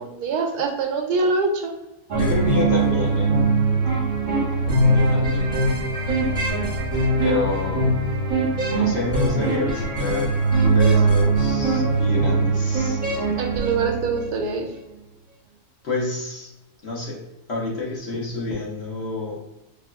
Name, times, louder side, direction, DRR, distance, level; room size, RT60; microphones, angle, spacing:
voice 1, 0.0-1.7 13.4-14.7, right 4 dB, 90° right, 3 dB, 1.2 m, -24 dB
voice 2, 2.1-3.3 4.9-5.5 7.2-7.9 8.7-10.3 10.6-13.0 15.8-16.5 16.8-17.2 17.5-19.5, left 3 dB, 50° left, -4 dB, 1.1 m, -28 dB
sound 1, 2.1-14.4, right 3 dB, 40° right, 0.8 m, -21 dB
4.1 x 2.7 x 2.2 m, 0.97 s
omnidirectional pair, 1.6 m